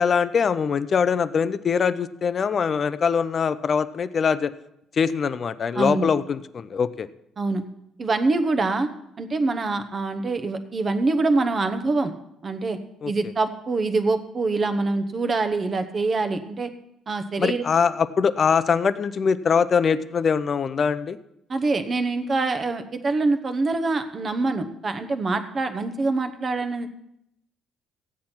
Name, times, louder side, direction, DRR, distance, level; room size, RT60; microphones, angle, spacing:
voice 1, 0.0-4.5 4.9-7.1 13.0-13.1 17.4-21.2, left 6 dB, 30° left, 14 dB, 0.4 m, -22 dB
voice 2, 5.8-6.1 7.4-7.6 8.0-8.9 9.2-12.1 12.4-12.8 13.1-16.7 17.1-17.6 21.5-26.9, right 3 dB, 25° right, 8 dB, 0.9 m, -25 dB
15.0 x 9.5 x 4.4 m, 0.80 s
cardioid pair, 170°, 0 cm